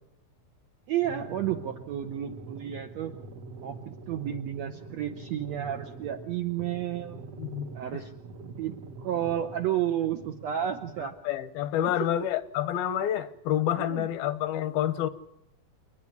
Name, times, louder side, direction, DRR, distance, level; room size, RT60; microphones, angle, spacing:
voice 1, 0.9-3.2 3.6-7.2 7.7-8.1 8.6-11.1 11.8-12.1 13.7-14.1, right 11 dB, 70° right, 1.6 m, -31 dB
sound 1, 1.0-11.0, right 3 dB, 55° right, 1.9 m, -44 dB
voice 2, 7.4-7.7 11.2-15.1, left 11 dB, 80° left, 2.8 m, -28 dB
28.5 x 10.5 x 9.6 m
omnidirectional pair, 4.2 m